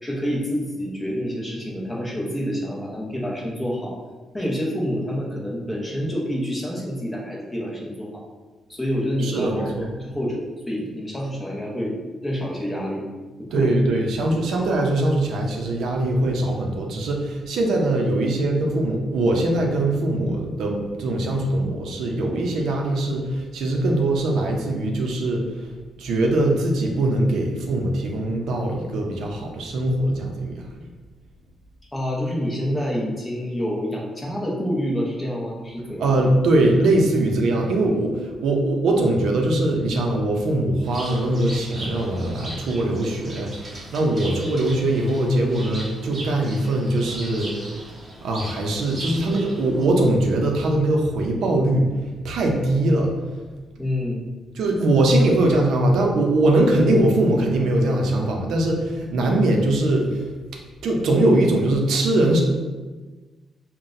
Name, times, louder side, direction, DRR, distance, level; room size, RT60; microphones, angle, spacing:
voice 1, 0.0-4.0 4.3-8.2 8.7-9.8 10.0-11.9 12.2-13.0 13.5-13.7 31.9-36.2 53.8-54.2, equal, 10° left, -3 dB, 0.7 m, -27 dB
voice 2, 9.2-9.9 13.5-25.7 26.0-30.9 36.0-47.5 48.2-51.9 52.2-53.1 54.6-60.2 60.8-62.4, right 1 dB, 80° right, 1 dB, 0.6 m, -21 dB
Bird, 40.8-49.8, right 1 dB, 25° right, 0.8 m, -38 dB
5.6 x 2.2 x 2.6 m, 1.3 s
cardioid pair, 145°, 0 cm